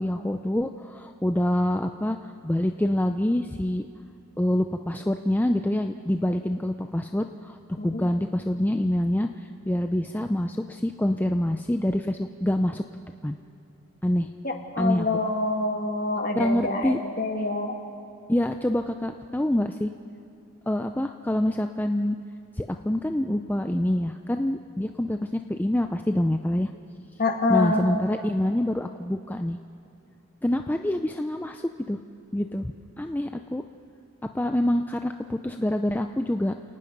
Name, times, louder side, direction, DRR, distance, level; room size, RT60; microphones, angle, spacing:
voice 1, 0.0-2.2 2.4-3.9 4.4-12.8 13.2-13.4 14.0-14.3 14.8-15.1 16.4-17.0 18.3-19.9 20.7-22.2 22.6-26.7 27.5-29.6 30.4-32.0 32.3-32.7 33.0-33.6 34.3-36.5, left 1 dB, 10° left, 6 dB, 0.4 m, -26 dB
voice 2, 7.8-8.1 14.4-17.7 27.2-27.9, left 2 dB, 40° left, 3 dB, 2.0 m, -26 dB
29.0 x 19.0 x 5.3 m, 2.7 s
head